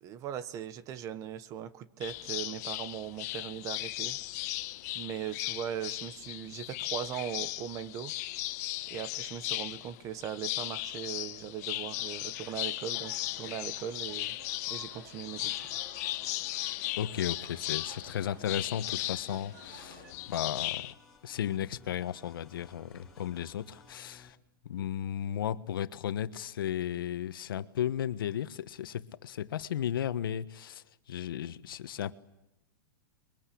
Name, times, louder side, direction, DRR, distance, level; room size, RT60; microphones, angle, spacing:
voice 1, 0.0-4.2 4.9-8.1 8.9-14.4 14.7-15.7, right 10 dB, 30° right, 1.2 m, -39 dB
sound 1, 2.0-20.9, left 18 dB, 50° left, 1.0 m, -37 dB
sound 2, 11.6-20.1, right 5 dB, 60° right, 5.4 m, -54 dB
voice 2, 17.0-20.8 21.2-24.4 24.6-32.1, left 10 dB, 85° left, 1.4 m, -35 dB
sound 3, 20.1-24.3, left 3 dB, 5° left, 6.0 m, -58 dB
29.0 x 23.0 x 8.6 m
supercardioid pair, 150°, 11 cm